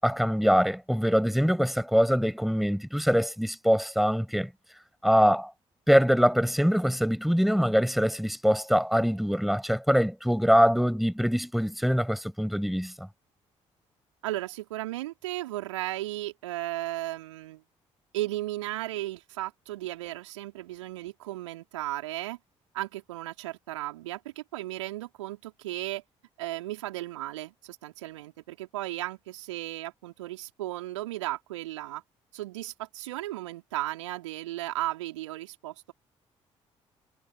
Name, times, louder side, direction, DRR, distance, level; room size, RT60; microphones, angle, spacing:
voice 1, 0.0-4.5 5.0-5.5 5.9-13.1, equal, ahead, 7.9 m, -23 dB
voice 2, 14.2-17.6 18.1-22.4 22.7-26.0 26.4-32.0 32.3-35.7, right 16 dB, 75° right, 4.5 m, -35 dB
figure-of-eight pair, 45°, 16 cm